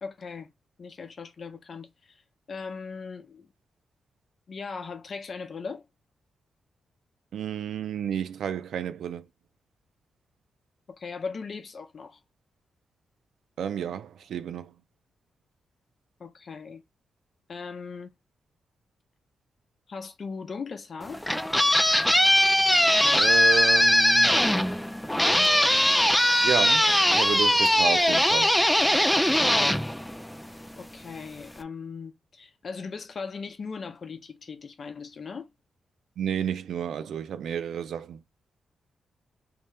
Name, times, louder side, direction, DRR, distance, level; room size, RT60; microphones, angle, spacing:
voice 1, 0.0-0.5 0.8-2.2 2.5-3.5 4.5-5.8 10.9-12.2 16.2-16.8 17.5-18.1 19.9-21.2 30.8-35.5, left 5 dB, 50° left, 0.7 m, -38 dB
voice 2, 7.3-9.3 13.6-14.7 23.1-24.5 26.4-28.5 36.2-38.2, right 8 dB, 80° right, 0.4 m, -31 dB
sound 1, 21.0-30.7, left 1 dB, 5° left, 0.3 m, -21 dB
2.8 x 2.1 x 3.3 m
cardioid pair, 100°, 0 cm